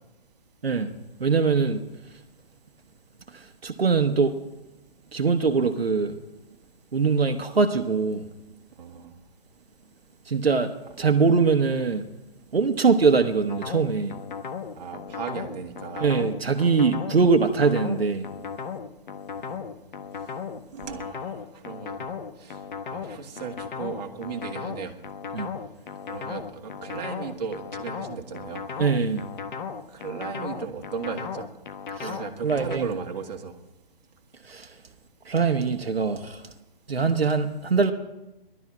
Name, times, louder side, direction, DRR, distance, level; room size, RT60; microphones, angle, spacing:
voice 1, 1.2-1.8 3.6-4.3 5.1-6.2 6.9-8.2 10.3-10.7 11.0-12.0 12.5-14.2 16.0-18.2 25.3-25.5 28.8-29.2 32.0-32.1 32.4-32.9 34.5-34.7 35.3-36.4 36.9-37.9, right 5 dB, 85° right, 6 dB, 1.3 m, -22 dB
voice 2, 8.8-9.1 14.8-16.1 19.4-19.6 20.7-22.1 22.4-22.6 22.9-25.0 26.1-28.6 29.9-31.5 32.0-33.5, right 6 dB, 45° right, 3 dB, 2.0 m, -36 dB
sound 1, 13.5-32.8, left 6 dB, 55° left, 1.2 m, -36 dB
16.5 x 12.5 x 6.1 m, 0.99 s
figure-of-eight pair, 140°, 29 cm